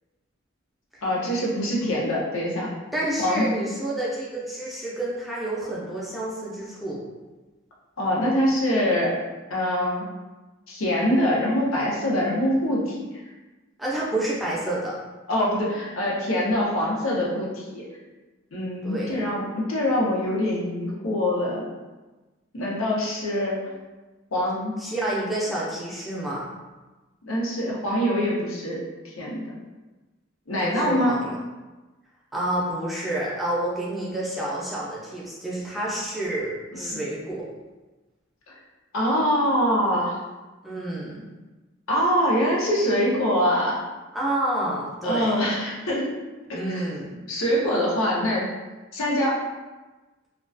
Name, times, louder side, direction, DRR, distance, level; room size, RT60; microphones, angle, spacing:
voice 1, 1.0-2.7 3.2-3.5 8.0-9.1 9.5-10.1 10.7-13.1 15.3-17.8 18.5-21.6 22.5-23.6 24.3-24.7 27.2-29.5 30.5-31.2 36.7-37.0 38.5-38.6 38.9-40.2 41.9-43.8 45.0-46.1 46.5-46.9 47.3-48.5 48.9-49.4, equal, 90° left, -4 dB, 0.7 m, -24 dB
voice 2, 2.9-7.0 13.8-14.9 18.8-19.1 24.8-26.5 30.6-31.4 32.3-37.4 40.6-41.3 44.1-45.4 46.5-47.2, right 1 dB, ahead, -7 dB, 0.4 m, -29 dB
2.3 x 2.2 x 2.4 m, 1.2 s
head